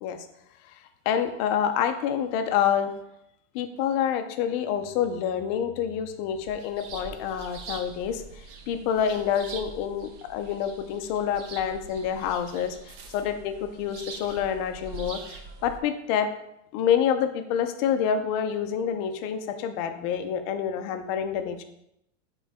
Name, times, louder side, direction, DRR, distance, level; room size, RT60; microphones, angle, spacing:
voice 1, 1.1-2.9 3.5-12.7 13.1-16.3 16.7-21.6, left 8 dB, 30° left, 8 dB, 0.3 m, -27 dB
sound 1, 6.3-15.8, right 4 dB, 50° right, 0.9 m, -43 dB
8.6 x 3.8 x 3.4 m, 0.82 s
supercardioid pair, 145°, 40 cm